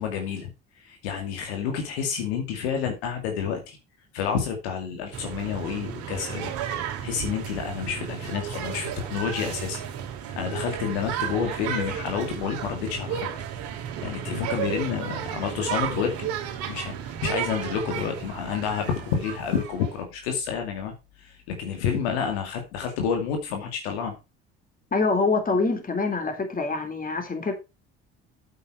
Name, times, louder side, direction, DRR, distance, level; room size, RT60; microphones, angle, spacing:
voice 1, 0.0-3.8 4.1-6.5 6.8-9.8 10.4-13.3 14.0-16.3 16.7-20.9 21.2-24.2, left 7 dB, 75° left, 2.4 m, -29 dB
sound 1, 5.1-20.0, right 9 dB, 65° right, 2.9 m, -33 dB
voice 2, 24.9-27.5, left 3 dB, 25° left, 3.6 m, -25 dB
8.7 x 8.2 x 4.7 m
hypercardioid pair, 60°, 32 cm